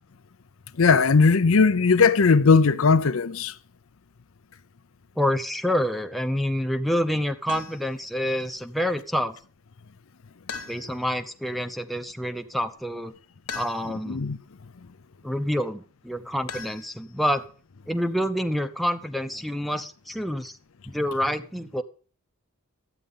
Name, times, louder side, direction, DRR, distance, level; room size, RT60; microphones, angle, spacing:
voice 1, 0.8-3.5 14.1-14.4, left 4 dB, 65° left, 0.6 m, -18 dB
voice 2, 5.2-9.4 10.7-13.1 13.5-14.2 15.2-17.4 17.9-20.6 20.9-21.8, equal, ahead, 0.7 m, -27 dB
sound 1, 7.5-8.0 10.5-11.2 13.5-14.2 16.5-17.4, left 5 dB, 85° left, 1.4 m, -39 dB
13.0 x 9.0 x 5.4 m
head